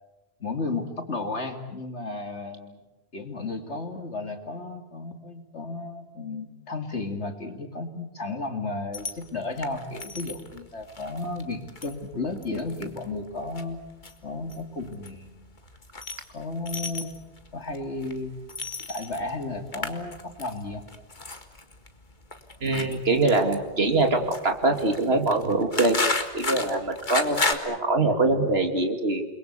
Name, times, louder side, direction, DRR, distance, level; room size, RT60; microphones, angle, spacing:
voice 1, 0.4-2.8 3.1-13.8 14.2-15.5 16.3-17.1 17.5-18.3 18.9-20.8, left 3 dB, 85° left, 6 dB, 2.8 m, -33 dB
sound 1, 8.9-27.5, left 3 dB, 45° left, 2.0 m, -34 dB
voice 2, 22.6-26.0 26.3-29.2, right 2 dB, 65° right, 5 dB, 2.8 m, -23 dB
29.0 x 22.0 x 8.3 m, 1.0 s
omnidirectional pair, 1.1 m